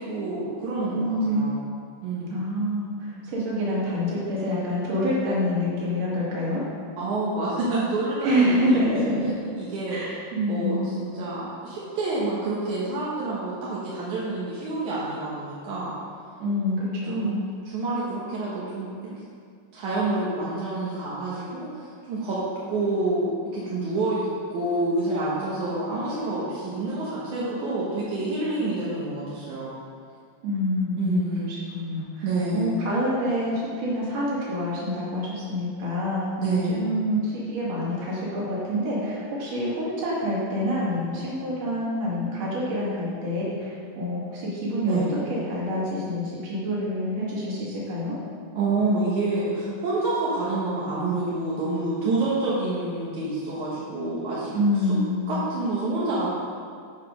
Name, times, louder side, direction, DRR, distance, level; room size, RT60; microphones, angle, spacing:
voice 1, 0.0-1.6 2.0-2.4 7.0-8.9 9.6-10.0 10.5-15.9 17.1-17.4 17.7-18.9 19.7-22.4 22.7-29.7 31.0-31.5 32.2-32.7 36.4-36.8 44.9-45.2 48.6-54.5 54.9-55.0 55.3-56.3, right 2 dB, 85° right, -8 dB, 2.7 m, -28 dB
voice 2, 0.9-1.5 2.3-6.6 8.2-9.3 9.9-10.8 16.4-17.4 30.4-31.2 31.5-45.0 45.4-48.1 54.5-55.2, equal, 65° right, -7 dB, 3.3 m, -27 dB
11.5 x 4.9 x 5.1 m, 2.2 s
omnidirectional pair, 3.3 m